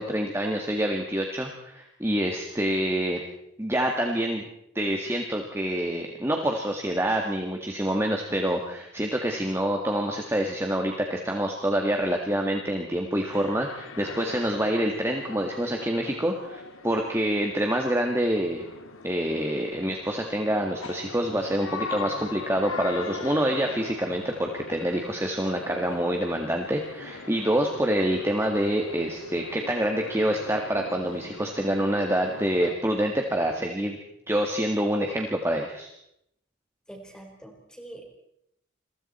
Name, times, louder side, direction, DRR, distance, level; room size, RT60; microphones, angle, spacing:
voice 1, 0.0-3.2 3.6-4.4 4.7-18.6 19.0-34.0 34.3-35.9, right 1 dB, 10° right, 2 dB, 1.7 m, -26 dB
sound 1, 13.3-32.7, left 3 dB, 80° left, 2.0 m, -40 dB
voice 2, 36.9-38.0, right 1 dB, 5° left, 2 dB, 4.3 m, -44 dB
29.5 x 22.5 x 4.3 m, 0.77 s
head